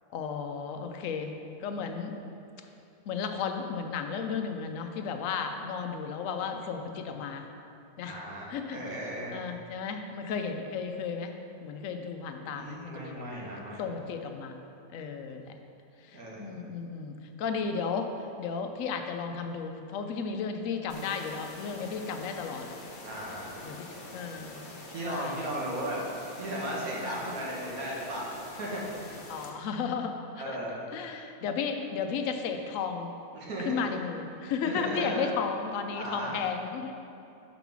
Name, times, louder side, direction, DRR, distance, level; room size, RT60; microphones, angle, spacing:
voice 1, 0.1-2.1 3.1-7.5 8.0-8.2 8.5-9.0 9.3-11.3 11.6-13.2 13.8-14.6 14.9-15.5 16.1-18.1 18.4-22.7 23.6-25.3 27.2-27.3 29.3-30.4 30.9-33.1 33.7-36.9, left 6 dB, 65° left, 5 dB, 0.9 m, -34 dB
voice 2, 8.1-9.4 12.5-13.8 16.1-16.6 23.0-23.6 24.9-26.0 26.4-28.3 28.6-28.9 30.4-30.8 33.3-33.8 34.6-35.3 35.9-36.4, right 1 dB, 70° right, -4 dB, 1.6 m, -36 dB
sound 1, 20.9-29.5, left 2 dB, 45° left, 0.7 m, -45 dB
5.3 x 4.9 x 6.0 m, 2.7 s
omnidirectional pair, 1.6 m